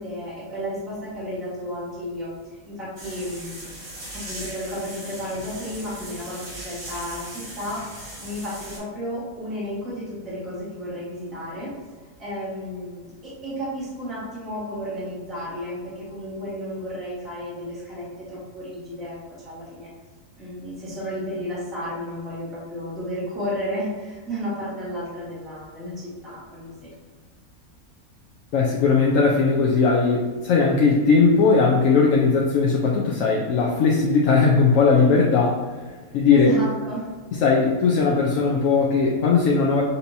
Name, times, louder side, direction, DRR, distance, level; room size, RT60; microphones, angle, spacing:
voice 1, 0.0-3.6 4.1-11.7 12.2-19.2 19.4-19.9 20.3-26.9 36.3-37.1, equal, ahead, -8 dB, 1.2 m, -32 dB
sound 1, 3.0-8.8, right 1 dB, 65° right, 2.1 m, -38 dB
voice 2, 28.5-35.6 36.1-36.5 37.3-39.8, left 4 dB, 70° left, -2 dB, 0.9 m, -18 dB
6.6 x 2.8 x 2.7 m, 1.4 s
omnidirectional pair, 1.5 m